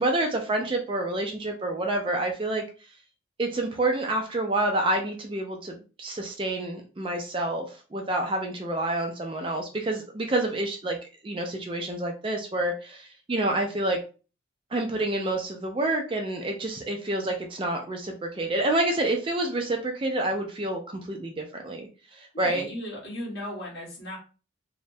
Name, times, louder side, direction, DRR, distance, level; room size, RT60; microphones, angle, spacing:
voice 1, 0.0-2.6 3.4-11.0 11.2-14.0 14.7-22.7, right 2 dB, 25° right, 3 dB, 0.3 m, -28 dB
voice 2, 22.3-24.2, left 1 dB, 50° left, -4 dB, 1.4 m, -36 dB
3.1 x 2.0 x 2.6 m, 0.35 s
head